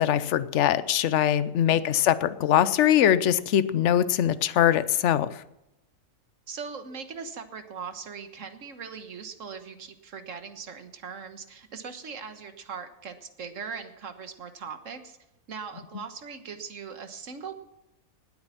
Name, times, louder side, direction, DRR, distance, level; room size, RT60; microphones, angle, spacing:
voice 1, 0.0-5.4, left 10 dB, 60° left, 14 dB, 0.9 m, -22 dB
voice 2, 6.5-15.2 15.5-17.6, right 6 dB, 55° right, 8 dB, 1.7 m, -40 dB
19.0 x 8.8 x 5.8 m, 0.91 s
omnidirectional pair, 1.6 m